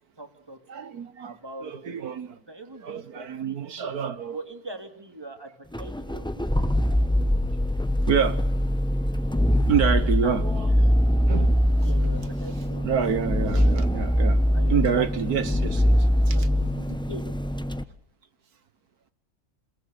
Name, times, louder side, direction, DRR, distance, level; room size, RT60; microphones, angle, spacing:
voice 1, 0.2-0.6 1.2-2.2 2.5-3.6 4.3-6.7 9.8-10.4 11.8-13.3 14.5-16.0 16.3-17.2, right 1 dB, 15° right, 3.0 m, -42 dB
voice 2, 0.7-2.4 2.8-4.4 8.1-8.5 9.7-10.7 11.3-11.9 12.8-14.4 14.7-15.8 16.3-16.5, right 7 dB, 80° right, 1.9 m, -27 dB
sound 1, 5.7-17.8, equal, 5° left, 0.9 m, -23 dB
28.5 x 19.5 x 6.8 m
omnidirectional pair, 1.6 m